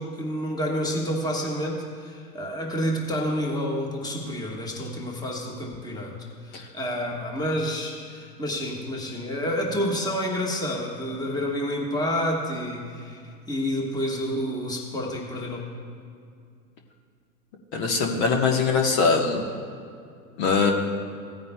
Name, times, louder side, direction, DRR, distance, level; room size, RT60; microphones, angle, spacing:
voice 1, 0.0-6.1 6.4-13.2 13.5-15.6, equal, 10° left, -1 dB, 1.5 m, -29 dB
voice 2, 17.7-19.4 20.4-20.7, left 5 dB, 45° left, 2 dB, 1.3 m, -21 dB
17.0 x 9.4 x 2.3 m, 2.3 s
hypercardioid pair, 105°, 49 cm